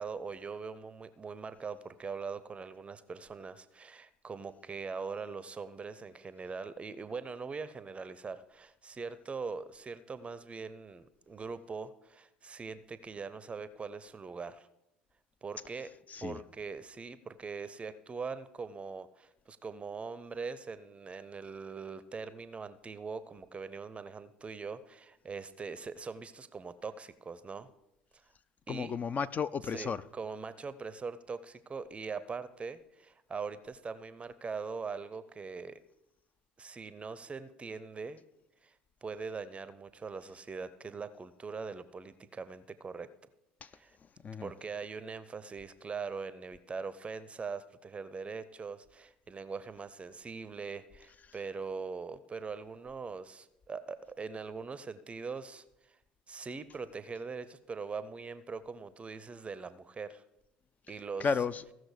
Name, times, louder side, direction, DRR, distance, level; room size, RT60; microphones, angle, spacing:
voice 1, 0.0-14.7 15.4-15.9 16.2-27.7 28.7-29.0 29.7-35.8 36.6-38.2 38.6-38.7 39.0-43.1 43.7-44.0 44.4-56.0 56.3-60.2 60.9-61.3, right 5 dB, 25° right, 0.6 m, -42 dB
voice 2, 16.1-16.4 28.7-30.0 43.6-43.7 44.2-44.5 61.2-61.6, left 6 dB, 30° left, 0.5 m, -33 dB
16.0 x 6.2 x 4.9 m
figure-of-eight pair, 65°, 5 cm